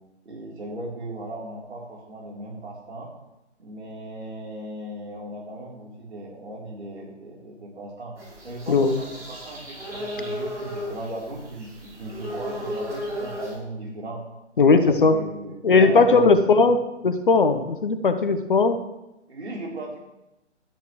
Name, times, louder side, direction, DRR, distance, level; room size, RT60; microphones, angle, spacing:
voice 1, 0.3-3.1 3.6-8.2 8.4-14.2 14.7-16.3 19.3-20.0, right 1 dB, 65° right, -4 dB, 3.6 m, -37 dB
sound 1, 8.2-13.5, equal, 10° right, 5.2 m, -35 dB
voice 2, 8.7-9.0 14.6-15.2 15.6-18.8, left 4 dB, 45° left, 10 dB, 1.0 m, -18 dB
15.0 x 13.0 x 3.1 m, 0.94 s
figure-of-eight pair, 140°, 36 cm